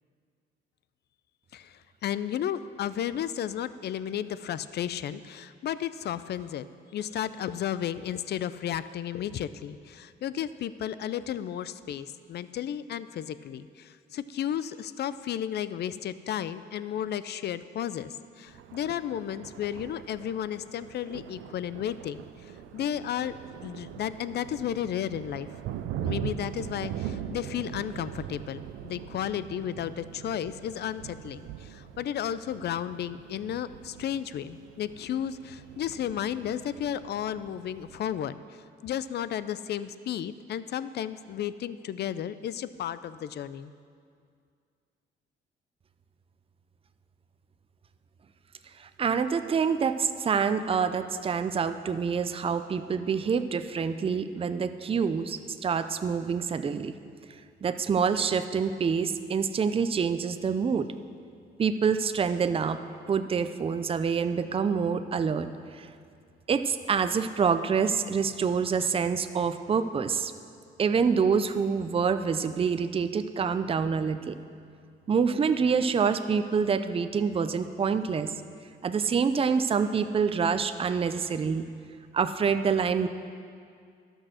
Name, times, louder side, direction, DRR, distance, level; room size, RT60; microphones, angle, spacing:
voice 1, 1.5-6.7 6.9-23.4 23.6-25.5 26.0-38.4 38.8-43.7, left 10 dB, 55° left, 15 dB, 0.4 m, -33 dB
Thunder, 18.5-38.2, right 10 dB, 90° right, 0.5 m, -41 dB
voice 2, 48.8-56.9 57.6-60.9 61.6-62.8 63.1-65.5 65.7-65.9 66.5-70.3 70.8-74.4 75.1-78.3 78.8-81.7 82.1-83.1, right 6 dB, 30° right, 10 dB, 0.5 m, -26 dB
12.5 x 6.3 x 6.3 m, 2.3 s
cardioid pair, 90°, 20 cm